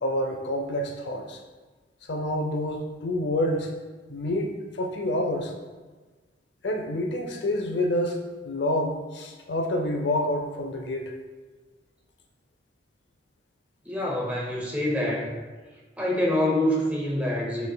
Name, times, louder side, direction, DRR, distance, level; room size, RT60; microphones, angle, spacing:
voice 1, 0.0-1.4 2.1-3.7 4.1-5.5 6.6-8.2 8.4-11.1, left 1 dB, 70° left, 3 dB, 0.6 m, -28 dB
voice 2, 13.8-15.3 16.0-17.7, left 1 dB, 10° right, -3 dB, 0.7 m, -26 dB
6.3 x 3.5 x 2.2 m, 1.3 s
head